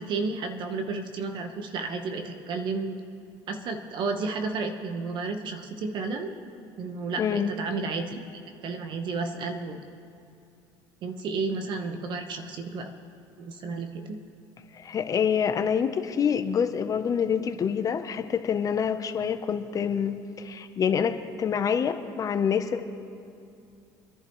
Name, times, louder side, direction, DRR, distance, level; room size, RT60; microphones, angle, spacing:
voice 1, 0.0-3.0 3.5-6.3 6.8-8.2 8.6-9.8 11.0-12.9 13.4-14.2, right 4 dB, 55° right, 6 dB, 1.2 m, -32 dB
voice 2, 7.2-7.5 14.7-22.8, left 7 dB, 35° left, 8 dB, 0.8 m, -26 dB
26.5 x 11.0 x 3.2 m, 2.6 s
supercardioid pair, 105°, 10 cm